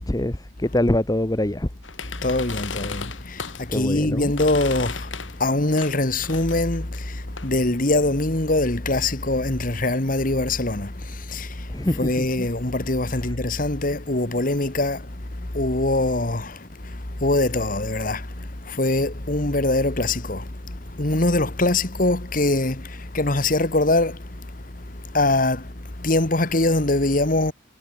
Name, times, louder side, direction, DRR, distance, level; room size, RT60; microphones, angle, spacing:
voice 1, 0.0-1.7 3.7-4.3 11.7-12.3, left 1 dB, 20° left, 0.9 m, -24 dB
sound 1, 1.8-3.7 4.3-5.5 5.7-7.5, left 6 dB, 85° left, 3.2 m, -35 dB
voice 2, 2.2-3.1 3.7-5.0 5.4-6.9 7.4-10.9 11.3-11.5 12.0-15.0 15.5-16.5 17.2-18.2 18.7-20.4 21.0-22.8 23.1-24.2 25.1-25.6 26.0-27.5, left 2 dB, 45° left, 1.9 m, -22 dB
head